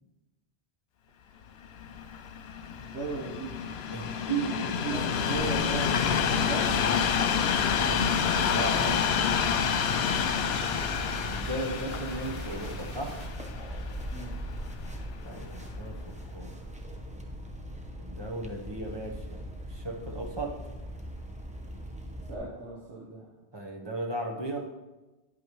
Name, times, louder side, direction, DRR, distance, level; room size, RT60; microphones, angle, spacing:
Train, 1.6-14.9 15.5-15.7, left 7 dB, 65° left, 0.8 m, -28 dB
voice 1, 2.7-3.5 4.8-5.0 5.3-6.0 6.3-6.7 10.1-10.3 14.1-14.3 22.3-23.3, right 3 dB, 75° right, -4 dB, 1.5 m, -37 dB
voice 2, 3.9-5.0 7.8-9.1 11.3-13.2 15.2-16.0 16.3-16.6 18.0-19.4 19.7-20.6 22.4-22.5 23.5-24.7, right 3 dB, 25° right, 0 dB, 1.0 m, -35 dB
sound 1, 5.3-22.3, equal, 10° right, 0.6 m, -40 dB
sound 2, 7.4-13.3, equal, 30° left, 1.7 m, -44 dB
9.8 x 8.4 x 3.1 m, 1.1 s
omnidirectional pair, 1.2 m